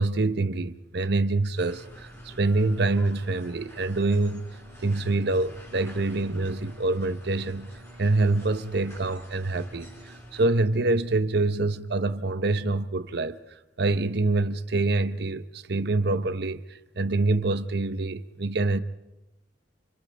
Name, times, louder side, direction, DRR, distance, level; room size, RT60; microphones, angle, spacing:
voice 1, 0.0-4.4 4.8-7.7 8.0-13.4 13.8-18.8, right 2 dB, 65° right, 0.9 m, -26 dB
sound 1, 1.6-10.5, equal, 15° left, 3.9 m, -47 dB
29.5 x 27.5 x 3.4 m
head